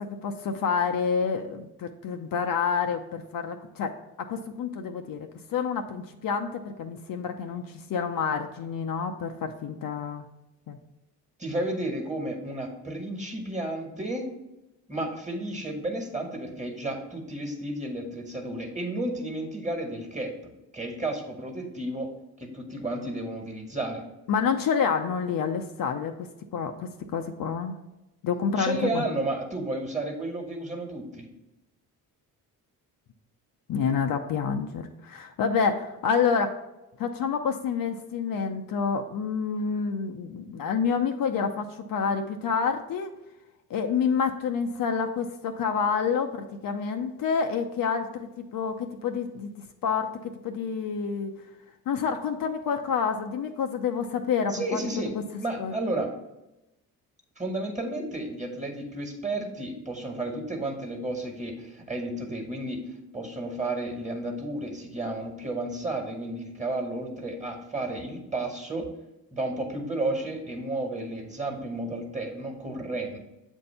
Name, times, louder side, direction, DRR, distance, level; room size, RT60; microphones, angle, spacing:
voice 1, 0.0-3.9 4.2-10.2 10.7-10.8 24.3-27.8 28.2-29.0 33.7-36.5 37.0-43.1 43.7-49.5 49.8-51.3 51.9-54.8 55.6-55.7, left 6 dB, 60° left, 4 dB, 0.6 m, -28 dB
voice 2, 11.4-14.3 14.9-20.3 20.7-22.1 22.4-24.0 28.6-31.3 54.5-55.2 55.4-56.1 57.4-62.8 63.1-68.9 69.3-73.2, right 2 dB, 20° right, 2 dB, 1.5 m, -32 dB
7.5 x 2.7 x 5.5 m, 0.95 s
supercardioid pair, 60°, 39 cm